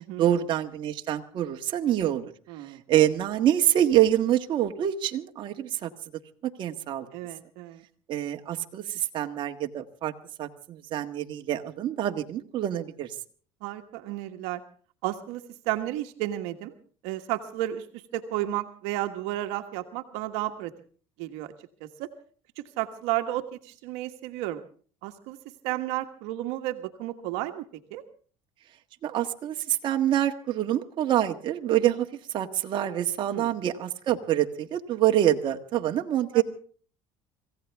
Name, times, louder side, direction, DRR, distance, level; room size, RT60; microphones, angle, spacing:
voice 1, 0.0-2.3 2.9-5.9 6.4-7.1 8.1-10.1 10.4-13.1 29.0-32.1 32.3-36.4, right 12 dB, 50° right, 4 dB, 1.6 m, -26 dB
voice 2, 2.5-2.8 7.1-7.8 13.6-14.6 15.0-16.7 17.0-20.7 21.2-21.5 21.8-22.1 22.6-24.6 25.0-25.4 25.6-28.0 33.3-33.5 36.3-36.4, right 14 dB, 80° right, 7 dB, 1.4 m, -32 dB
25.5 x 16.0 x 3.5 m, 0.43 s
cardioid pair, 120°, 11 cm